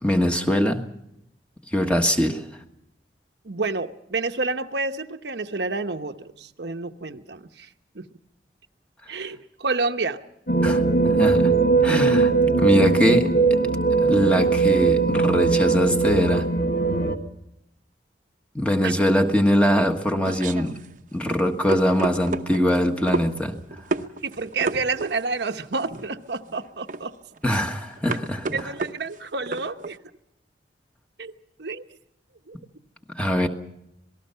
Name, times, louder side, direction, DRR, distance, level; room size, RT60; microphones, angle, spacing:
voice 1, 0.0-0.9 1.7-2.5 10.6-11.5 11.8-13.4 14.0-16.5 18.5-20.8 21.1-23.6 27.4-28.7 33.1-33.5, equal, 5° left, 1.4 m, -22 dB
voice 2, 3.4-7.7 7.9-8.0 9.1-10.2 18.8-18.9 24.2-27.1 28.5-30.0 31.2-31.3 31.6-31.8 32.5-32.6, right 3 dB, 70° right, 1.0 m, -29 dB
sound 1, 10.5-17.2, right 4 dB, 55° left, 1.6 m, -20 dB
sound 2, 19.6-30.0, right 3 dB, 45° right, 0.9 m, -33 dB
26.5 x 19.0 x 5.7 m
head